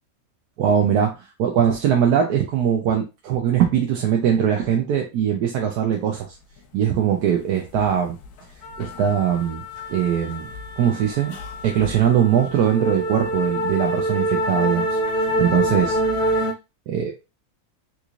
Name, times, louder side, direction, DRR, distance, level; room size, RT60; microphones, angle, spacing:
voice 1, 0.6-6.3 6.7-8.2 8.8-9.6 9.9-10.5 10.8-11.4 11.6-14.9 15.1-16.0 16.9-17.1, right 9 dB, 85° right, 1 dB, 1.2 m, -21 dB
sound 1, 7.7-8.0 8.2-16.5, right 1 dB, 90° left, 1.2 m, -26 dB
3.8 x 3.0 x 2.4 m, 0.26 s
omnidirectional pair, 1.6 m